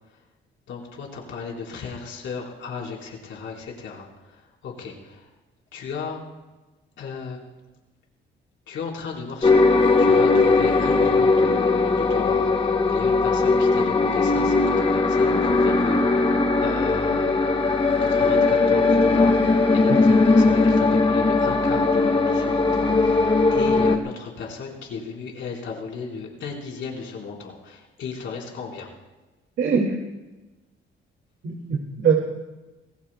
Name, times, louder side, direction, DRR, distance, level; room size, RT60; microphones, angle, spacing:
voice 1, 0.7-5.3 5.7-6.2 7.0-7.4 8.7-28.9, left 5 dB, 75° left, -1 dB, 4.2 m, -35 dB
sound 1, 9.4-24.0, left 3 dB, 25° left, 1.3 m, -19 dB
voice 2, 29.6-29.9 31.4-32.1, right 6 dB, 70° right, 0 dB, 2.2 m, -22 dB
26.0 x 18.0 x 2.2 m, 1.1 s
cardioid pair, 90°, 20 cm